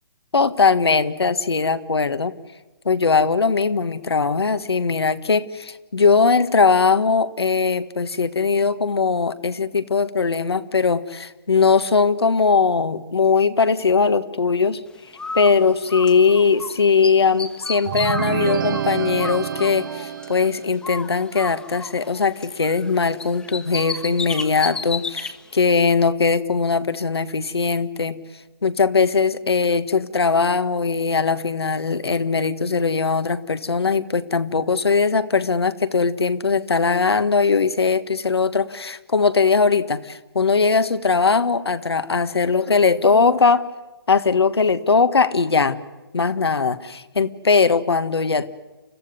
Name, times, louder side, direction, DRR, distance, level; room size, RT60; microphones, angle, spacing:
voice 1, 0.3-2.3 2.8-14.8 15.3-28.2 28.6-43.7 44.1-45.8 46.1-48.5, left 5 dB, 85° left, 11 dB, 1.6 m, -20 dB
Bird, 15.2-16.7 17.0-20.5 20.8-22.9 23.2-25.3, left 3 dB, 5° left, 1.3 m, -32 dB
sound 1, 17.9-20.7, right 9 dB, 55° right, 1.3 m, -27 dB
30.0 x 14.5 x 9.6 m, 1.1 s
hypercardioid pair, 140°, 13 cm